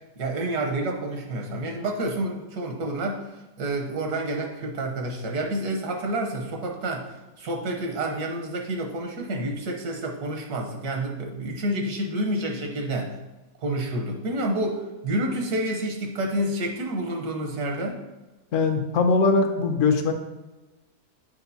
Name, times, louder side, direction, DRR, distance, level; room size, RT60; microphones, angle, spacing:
voice 1, 0.2-3.3 3.6-13.1 13.6-18.0, right 1 dB, 80° right, 1 dB, 1.5 m, -29 dB
voice 2, 18.5-20.1, left 4 dB, 60° left, 5 dB, 0.9 m, -21 dB
8.1 x 4.8 x 2.7 m, 1.1 s
omnidirectional pair, 1.7 m